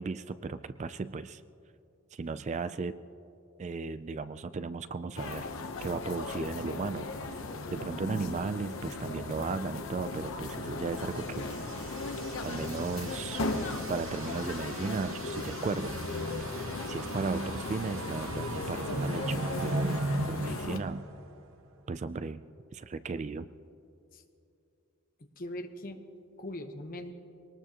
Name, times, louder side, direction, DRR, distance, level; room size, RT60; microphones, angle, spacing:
voice 1, 0.0-1.4 2.1-3.0 3.6-5.5 5.8-7.1 7.7-11.5 12.4-13.5 13.9-16.0 16.5-16.6 16.9-20.0 20.3-21.0 21.9-22.4 22.7-23.5, right 4 dB, 35° right, 13 dB, 0.3 m, -35 dB
sound 1, 5.2-20.8, left 3 dB, 70° left, 0.9 m, -37 dB
voice 2, 8.0-8.4 24.1-24.2 25.4-26.0 26.4-27.1, left 1 dB, 40° left, 6 dB, 1.0 m, -40 dB
sound 2, 10.9-21.6, right 2 dB, 65° right, 1.0 m, -38 dB
23.5 x 19.0 x 2.9 m, 2.7 s
head